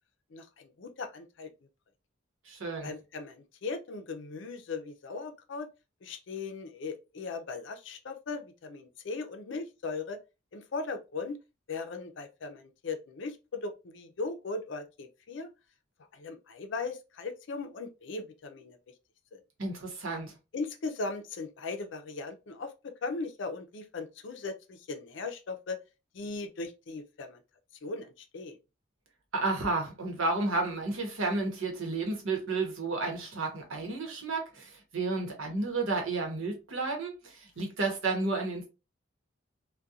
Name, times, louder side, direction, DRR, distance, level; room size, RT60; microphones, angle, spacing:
voice 1, 0.3-1.5 2.8-5.7 6.0-10.2 10.5-11.4 11.7-15.5 16.1-18.8 19.3-19.4 20.5-25.8 26.1-27.4 27.8-28.6, left 3 dB, 65° left, 0.4 m, -38 dB
voice 2, 2.5-2.9 19.6-20.3 29.3-38.7, right 3 dB, 85° right, 0.9 m, -32 dB
2.4 x 2.2 x 2.7 m
head